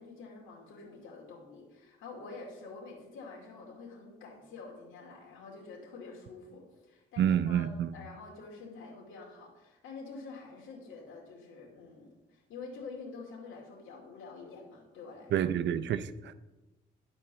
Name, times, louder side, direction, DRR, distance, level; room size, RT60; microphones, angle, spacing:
voice 1, 0.0-15.5, left 4 dB, 80° left, 2.4 m, -47 dB
voice 2, 7.2-7.9 15.3-16.3, right 9 dB, 65° right, 0.6 m, -28 dB
10.5 x 4.4 x 6.9 m
cardioid pair, 90°, 20 cm